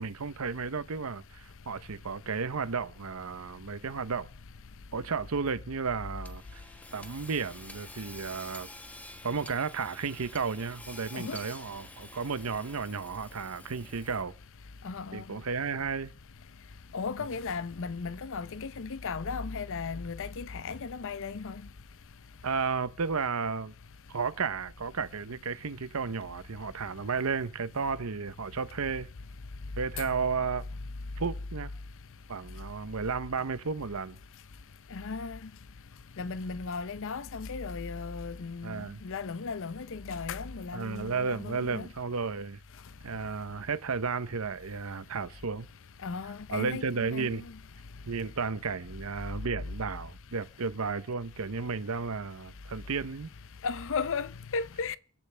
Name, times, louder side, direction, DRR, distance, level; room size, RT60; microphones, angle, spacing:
voice 1, 0.0-4.3 4.9-6.6 6.9-8.7 9.2-14.3 15.1-16.1 17.2-17.3 22.4-23.7 24.1-29.1 29.8-30.6 31.2-31.7 32.3-34.2 38.6-39.0 40.7-42.6 43.0-45.7 46.5-47.4 48.0-53.3, right 5 dB, 70° right, 0.8 m, -33 dB
Hammer / Sawing, 6.2-14.4, left 1 dB, 5° left, 1.1 m, -49 dB
voice 2, 14.8-15.2 16.9-21.6 34.9-35.4 36.2-41.8 46.0-47.4 53.6-55.0, left 4 dB, 65° left, 0.7 m, -36 dB
29.0 x 12.0 x 3.4 m
head